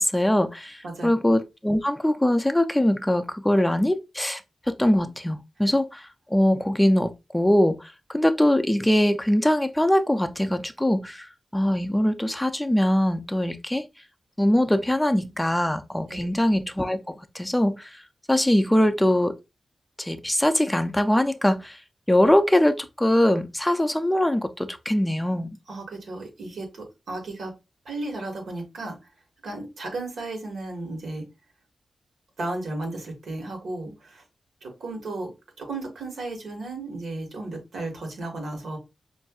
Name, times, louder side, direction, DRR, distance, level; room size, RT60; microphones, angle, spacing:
voice 1, 0.0-4.4 4.7-13.8 14.4-18.0 18.3-19.4 20.0-21.8 22.1-25.5, left 1 dB, 5° left, 0.3 m, -22 dB
voice 2, 25.7-27.5 27.8-28.9 29.4-31.2 32.4-34.2 34.6-35.3 35.6-38.8, right 2 dB, 90° right, 1.5 m, -34 dB
5.4 x 2.5 x 2.3 m
wide cardioid pair, 140°, 0 cm